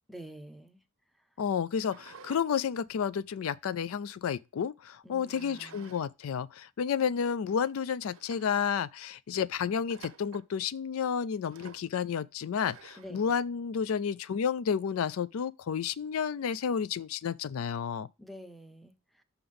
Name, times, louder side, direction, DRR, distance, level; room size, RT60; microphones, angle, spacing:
voice 1, 0.1-0.8 5.0-6.0 13.0-13.3 18.2-19.2, equal, ahead, 0.6 m, -48 dB
voice 2, 1.4-18.1, left 7 dB, 85° left, 0.4 m, -31 dB
sound 1, 1.8-2.5 2.9-4.2 5.3-6.1 6.3-6.4 7.1-7.2 7.6-7.7 8.1-8.8 9.9-10.5 11.5-11.9 12.6-13.2, right 6 dB, 80° right, 0.6 m, -52 dB
5.8 x 3.5 x 5.4 m
head